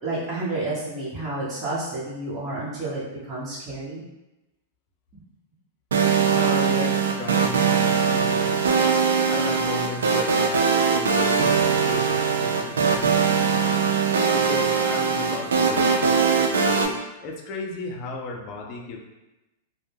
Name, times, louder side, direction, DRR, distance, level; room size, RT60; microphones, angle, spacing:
voice 1, 0.0-4.0 5.1-5.2, right 2 dB, 30° right, -8 dB, 0.9 m, -30 dB
sound 1, 5.9-16.9, right 5 dB, 80° right, 0.3 m, -21 dB
voice 2, 6.3-13.9 14.3-16.9 17.2-19.0, left 3 dB, 40° left, 0 dB, 0.5 m, -35 dB
2.1 x 2.1 x 3.3 m, 1.0 s
hypercardioid pair, 115°, 0 cm